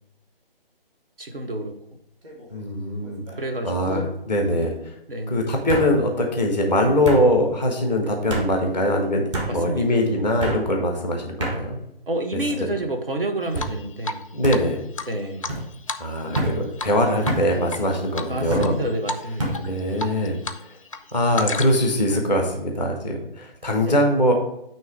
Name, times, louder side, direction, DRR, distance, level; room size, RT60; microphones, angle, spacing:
voice 1, 1.2-1.7 3.4-4.2 5.1-5.4 9.4-10.1 12.1-14.3 15.1-15.5 18.3-20.1 23.8-24.0, right 1 dB, 65° right, 5 dB, 1.3 m, -29 dB
sound 1, 2.2-2.6 3.0-3.6 4.6-4.7 5.7-5.9 7.0-7.2 8.3-8.5 9.3-9.5 10.4-10.6 11.4-11.6 12.3-12.8 13.5-13.7 14.4-14.6 15.5-15.7 16.3-16.6 17.3-17.5 18.5-18.7 19.4-19.6, right 1 dB, 30° right, 1.5 m, -27 dB
voice 2, 2.5-3.2 3.6-4.7 5.3-11.8 12.6-12.7 14.3-14.8 16.0-18.7 19.6-20.4 21.1-24.3, left 1 dB, 10° right, 2 dB, 0.6 m, -22 dB
Drip, 13.6-14.2 14.5-14.6 15.0-16.5 16.8-17.0 17.2-17.8 18.2-18.7 19.1-19.2 19.5-20.6 20.9-22.0, left 3 dB, 35° left, 0.4 m, -31 dB
9.2 x 3.1 x 4.9 m, 0.80 s
figure-of-eight pair, 145°, 30 cm